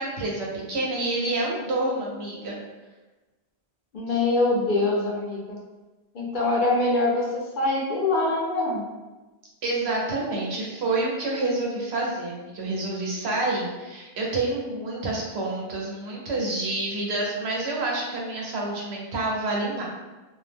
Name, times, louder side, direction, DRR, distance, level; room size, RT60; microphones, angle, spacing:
voice 1, 0.0-2.5 9.6-19.8, right 2 dB, 85° right, -3 dB, 1.0 m, -28 dB
voice 2, 3.9-5.6 6.1-8.8, left 2 dB, 60° left, -3 dB, 0.7 m, -24 dB
2.4 x 2.0 x 3.2 m, 1.2 s
omnidirectional pair, 1.1 m